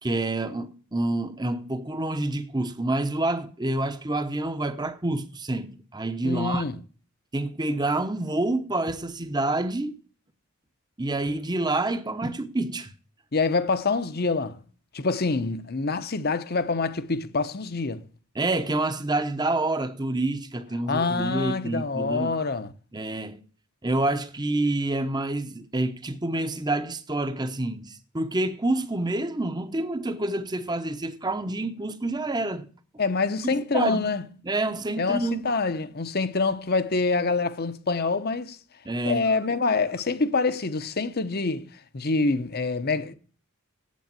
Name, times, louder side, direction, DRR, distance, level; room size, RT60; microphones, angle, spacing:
voice 1, 0.0-6.6 7.3-10.0 11.0-12.9 18.3-22.4 22.9-23.4 23.8-32.7 33.5-34.1 34.4-35.5 38.8-39.3, right 2 dB, 20° right, 0.9 m, -28 dB
voice 2, 6.2-6.8 13.3-14.6 14.9-18.0 20.9-22.7 33.0-34.2 35.0-38.6 39.0-41.7 41.9-43.1, left 3 dB, 45° left, 0.9 m, -26 dB
8.5 x 8.5 x 8.9 m
head